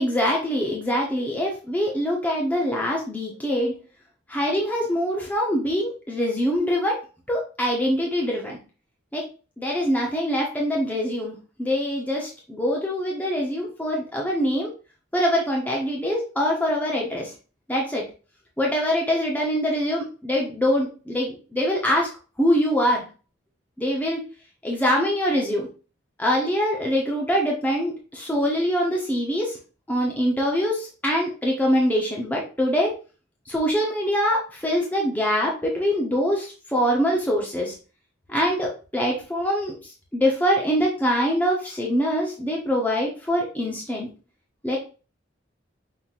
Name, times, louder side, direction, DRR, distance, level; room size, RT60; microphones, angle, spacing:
voice 1, 0.0-3.7 4.3-7.0 7.3-8.6 9.1-9.2 9.6-14.7 15.1-17.3 17.7-18.0 18.6-22.1 22.4-23.0 23.8-24.2 24.6-25.7 26.2-29.6 29.9-32.9 33.5-37.8 38.3-44.1 44.6-44.8, equal, 10° left, -2 dB, 0.8 m, -24 dB
5.6 x 3.2 x 2.4 m, 0.35 s
head